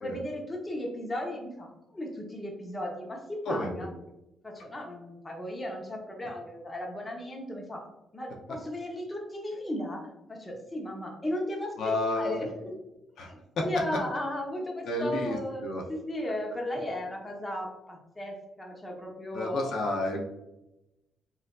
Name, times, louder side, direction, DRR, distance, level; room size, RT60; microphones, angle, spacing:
voice 1, 0.0-3.9 4.4-7.8 8.1-12.8 13.2-19.7, left 1 dB, 20° left, 0 dB, 0.9 m, -36 dB
voice 2, 11.8-12.5 13.2-13.3 13.6-13.7 14.8-15.8 19.3-20.3, left 2 dB, 70° left, 1 dB, 0.6 m, -30 dB
4.3 x 2.5 x 2.3 m, 0.92 s
cardioid pair, 90°, 0 cm